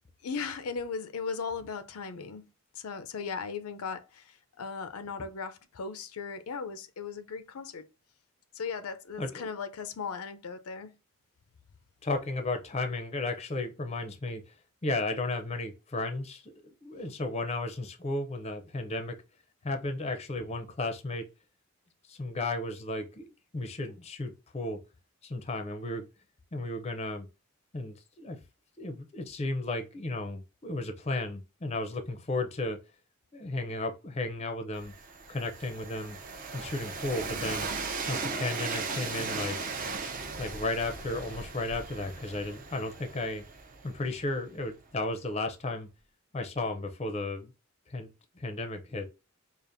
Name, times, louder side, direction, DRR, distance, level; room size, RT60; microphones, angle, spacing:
voice 1, 0.2-7.9 8.6-10.9, left 5 dB, 85° left, 0.5 m, -37 dB
voice 2, 12.0-14.4 14.8-16.5 16.8-19.2 19.6-21.3 22.1-23.3 23.5-24.8 25.2-26.1 26.5-27.3 27.7-28.4 28.8-32.8 33.3-34.9 35.3-36.2 36.5-37.7 38.1-39.6 40.4-43.4 43.8-45.9 46.3-47.5 47.9-49.1, left 2 dB, 30° left, 0.5 m, -34 dB
Train, 34.7-44.6, right 4 dB, 40° right, 0.5 m, -37 dB
5.0 x 2.5 x 2.6 m
head